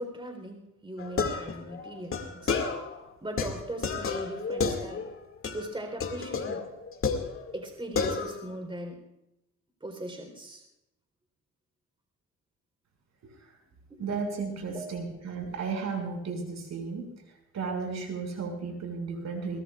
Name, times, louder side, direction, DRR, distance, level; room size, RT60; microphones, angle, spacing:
voice 1, 0.0-2.6 3.2-5.1 5.5-6.6 7.5-9.0 9.8-10.6 13.9-14.0 14.7-14.9, right 1 dB, 15° right, 4 dB, 3.9 m, -39 dB
sound 1, 1.0-3.0 3.4-5.2 5.4-5.7 6.0-7.7 8.0-8.5, left 5 dB, 45° left, 2.3 m, -31 dB
voice 2, 14.0-19.6, right 5 dB, 65° right, 3 dB, 6.2 m, -34 dB
22.5 x 20.5 x 2.5 m, 0.87 s
cardioid pair, 90°, 30 cm